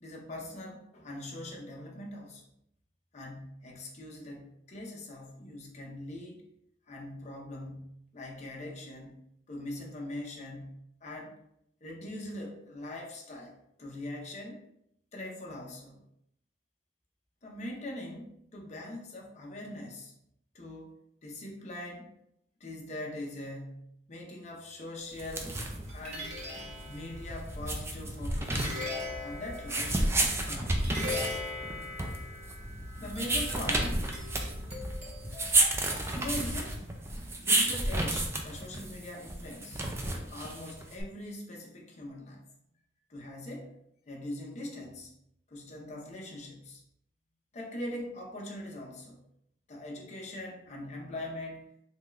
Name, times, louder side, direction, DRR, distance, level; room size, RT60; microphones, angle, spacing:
voice 1, 0.0-2.4 3.1-6.4 6.9-9.1 9.5-11.4 11.8-14.6 15.1-16.0 17.4-20.1 20.5-22.1 22.6-25.5 25.9-26.4 26.9-28.8 29.2-31.1 33.0-34.1 36.1-36.8 37.4-39.8 40.1-42.4 43.1-43.7 44.1-45.1 45.5-46.8 47.5-49.2 49.7-51.7, left 1 dB, 40° left, -1 dB, 0.7 m, -42 dB
sound 1, 25.1-41.0, right 2 dB, 15° right, 0.4 m, -31 dB
sound 2, 25.2-37.3, left 1 dB, 40° right, 0.9 m, -40 dB
3.5 x 2.3 x 3.1 m, 0.76 s
head